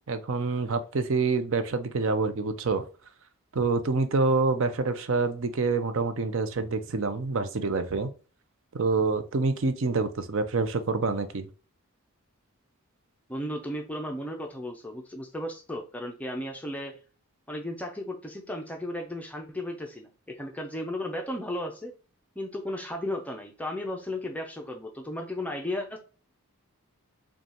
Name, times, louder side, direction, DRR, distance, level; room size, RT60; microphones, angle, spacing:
voice 1, 0.1-2.8 3.5-8.1 8.7-11.5, right 3 dB, 60° right, 0.5 m, -27 dB
voice 2, 13.3-17.0 17.5-21.9 22.4-26.0, left 1 dB, 5° left, 0.5 m, -35 dB
5.1 x 2.3 x 2.9 m
head